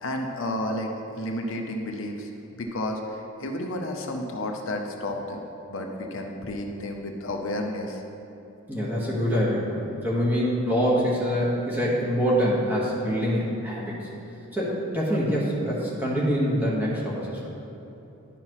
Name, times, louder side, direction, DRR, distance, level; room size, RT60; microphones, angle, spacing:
voice 1, 0.0-5.4 5.7-8.0, left 1 dB, 65° left, 2 dB, 0.6 m, -31 dB
voice 2, 8.7-13.9 14.5-17.4, equal, 10° right, -7 dB, 1.2 m, -25 dB
11.0 x 5.6 x 3.0 m, 3.0 s
head